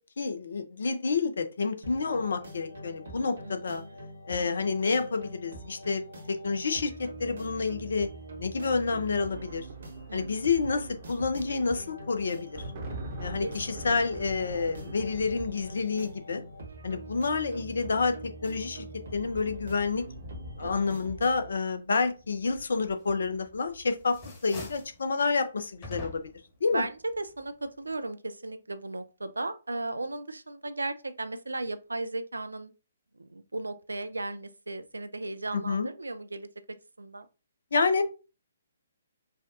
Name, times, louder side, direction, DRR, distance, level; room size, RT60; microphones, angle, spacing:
voice 1, 0.2-3.8 4.3-6.9 7.2-8.1 8.4-9.7 10.1-12.7 13.2-16.4 16.8-18.8 19.1-20.0 20.6-24.2 24.4-26.3 26.6-26.8 35.5-35.9 37.7-38.0, left 4 dB, 60° left, 0.6 m, -29 dB
sound 1, 1.8-21.5, right 1 dB, 60° right, 1.3 m, -44 dB
voice 2, 3.4-4.0 10.1-10.4 13.4-13.9 20.6-20.7 26.7-32.7 33.1-36.5 37.0-37.3, right 2 dB, 75° right, 0.5 m, -36 dB
sound 2, 9.2-24.9 26.1-26.3 26.6-27.3, equal, 40° right, 0.9 m, -46 dB
sound 3, 23.2-23.7 24.0-25.0 25.8-26.5, left 2 dB, 25° left, 1.2 m, -43 dB
4.9 x 2.3 x 2.6 m
figure-of-eight pair, 130°, 0 cm